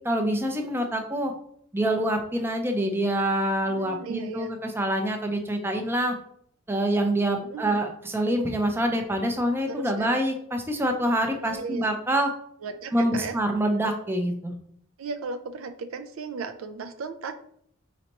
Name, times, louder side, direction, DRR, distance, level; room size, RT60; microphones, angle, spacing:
voice 1, 0.0-1.3 1.7-6.1 6.7-12.3 12.9-14.5, right 1 dB, 10° right, 3 dB, 0.5 m, -26 dB
voice 2, 3.7-4.5 7.5-7.8 9.7-10.1 11.4-11.9 12.6-13.4 15.0-17.3, right 5 dB, 75° right, 9 dB, 0.4 m, -35 dB
4.3 x 4.0 x 2.9 m, 0.67 s
head